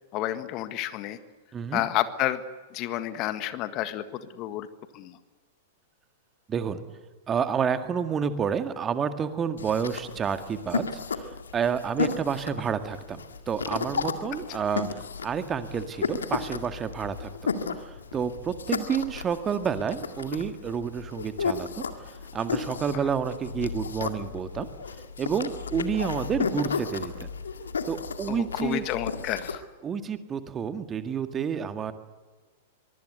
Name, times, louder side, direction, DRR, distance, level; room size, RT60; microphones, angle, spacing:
voice 1, 0.1-1.2 1.7-2.4 2.7-4.7 4.9-5.2 14.5-14.6 22.9-23.0 28.3-29.6, left 13 dB, 40° left, 11 dB, 1.7 m, -30 dB
voice 2, 6.5-6.8 7.3-13.2 13.5-17.3 17.8-21.8 22.3-24.7 25.2-27.3 27.9-28.8 29.8-31.9, right 7 dB, 20° right, 9 dB, 1.9 m, -29 dB
sound 1, 9.6-29.6, left 5 dB, 75° left, 2.1 m, -34 dB
23.5 x 23.5 x 8.1 m, 1.3 s
figure-of-eight pair, 100°, 0 cm